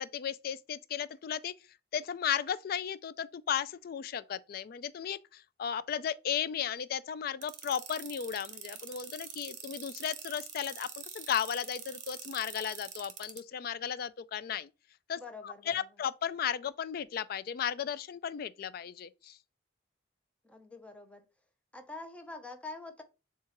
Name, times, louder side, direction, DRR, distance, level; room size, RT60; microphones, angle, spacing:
voice 1, 0.0-1.5 1.9-14.7 15.1-19.4, left 8 dB, 55° left, 0.3 m, -35 dB
sound 1, 7.4-13.4, right 8 dB, 40° right, 0.8 m, -44 dB
voice 2, 15.2-15.8 20.4-21.2 21.7-23.0, left 3 dB, 5° left, 0.6 m, -45 dB
7.2 x 2.4 x 2.9 m
head